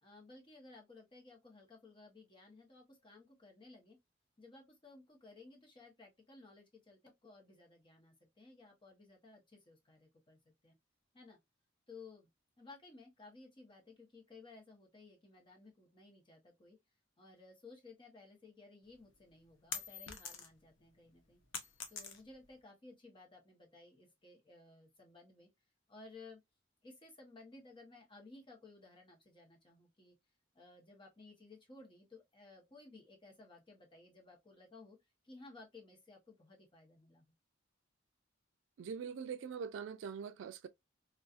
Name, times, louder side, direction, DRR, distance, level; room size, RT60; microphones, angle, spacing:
voice 1, 0.0-4.0 4.4-10.8 11.1-11.4 11.9-12.3 12.6-16.8 17.2-21.4 21.9-25.5 25.9-26.4 26.8-30.2 30.5-35.0 35.2-37.3, left 3 dB, 25° left, 0.9 m, -57 dB
sound 1, 18.9-20.7 21.1-22.5, left 6 dB, 80° left, 0.6 m, -45 dB
voice 2, 38.8-40.7, right 6 dB, 75° right, 0.3 m, -43 dB
2.6 x 2.3 x 2.3 m
head